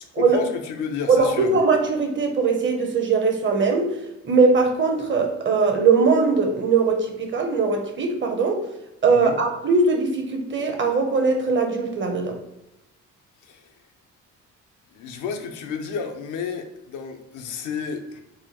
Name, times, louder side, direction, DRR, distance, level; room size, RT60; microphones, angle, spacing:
voice 1, 0.2-1.5 9.1-9.4 13.4-13.7 14.9-18.2, left 6 dB, 85° left, 6 dB, 0.6 m, -31 dB
voice 2, 1.1-4.0 4.2-8.7 9.0-12.4, right 4 dB, 40° right, 4 dB, 0.6 m, -20 dB
4.2 x 2.2 x 2.8 m, 0.95 s
cardioid pair, 90°, 30 cm